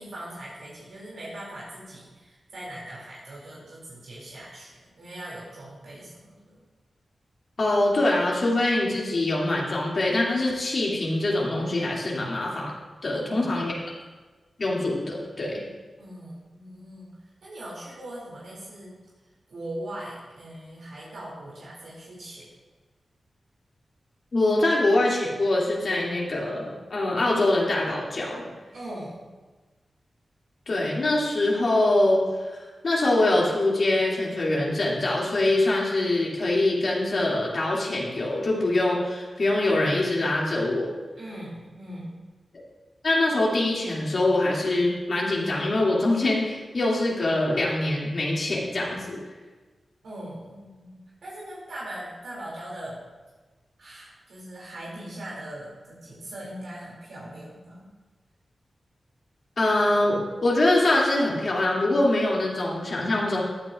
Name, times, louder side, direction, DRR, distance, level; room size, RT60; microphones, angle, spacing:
voice 1, 0.0-6.6 13.1-13.5 16.0-17.1 17.4-19.0 19.5-22.5 28.7-29.3 41.2-42.2 50.0-53.0 53.8-57.9, right 1 dB, 85° right, -6 dB, 2.7 m, -40 dB
voice 2, 7.6-12.7 13.0-13.7 14.6-15.6 24.3-28.5 30.7-40.9 43.0-49.2 59.6-63.4, left 2 dB, 65° left, -4 dB, 2.5 m, -24 dB
14.5 x 9.0 x 2.5 m, 1.3 s
cardioid pair, 45°, 0 cm